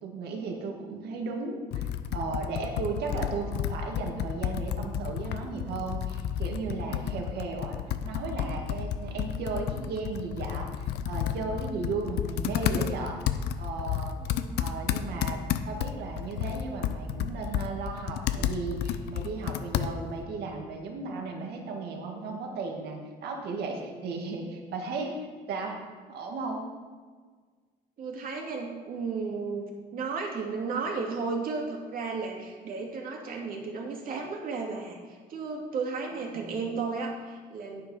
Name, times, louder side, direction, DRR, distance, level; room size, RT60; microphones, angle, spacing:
voice 1, 0.0-1.9 2.1-13.2 13.6-25.2 25.5-25.8 26.1-26.6 36.3-36.6, right 3 dB, 75° right, 1 dB, 2.0 m, -35 dB
Computer keyboard, 1.7-20.2, left 9 dB, 80° left, 0.7 m, -32 dB
voice 2, 14.2-14.6 23.7-23.8 28.0-37.8, right 4 dB, 55° right, 0 dB, 2.4 m, -34 dB
9.4 x 8.4 x 5.5 m, 1.5 s
cardioid pair, 110°, 17 cm